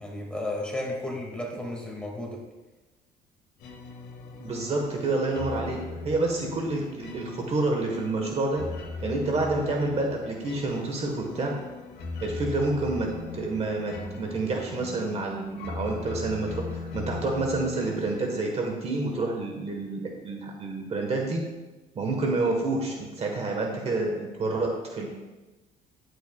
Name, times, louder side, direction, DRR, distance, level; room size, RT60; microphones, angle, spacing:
voice 1, 0.0-2.4, left 1 dB, 5° left, -1 dB, 2.0 m, -33 dB
sound 1, 3.6-19.1, left 4 dB, 75° left, 1.7 m, -39 dB
voice 2, 4.4-8.7 9.0-11.5 12.2-13.1 13.3-16.7 16.9-21.4 21.9-25.1, right 2 dB, 40° right, 1 dB, 1.2 m, -28 dB
10.5 x 7.9 x 2.3 m, 1.1 s
cardioid pair, 110°, 17 cm